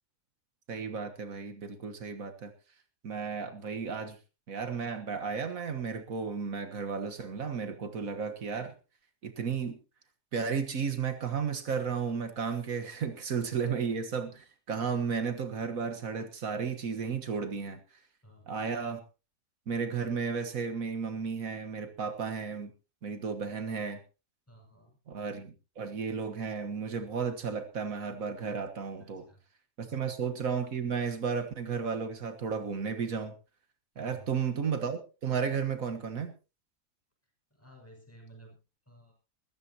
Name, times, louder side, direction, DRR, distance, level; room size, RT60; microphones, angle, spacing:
voice 1, 0.7-2.5 3.0-4.2 4.5-8.7 9.2-9.8 10.3-17.8 18.5-19.0 19.7-22.7 23.0-24.0 25.1-29.3 29.8-33.3 34.0-36.3, right 6 dB, 80° right, 7 dB, 1.8 m, -33 dB
voice 2, 18.2-18.6 24.5-25.0 29.0-29.4 29.8-30.1 34.0-34.3 37.5-38.6 38.9-39.1, right 1 dB, 10° left, 1 dB, 5.9 m, -55 dB
21.0 x 14.5 x 2.9 m, 0.32 s
omnidirectional pair, 1.4 m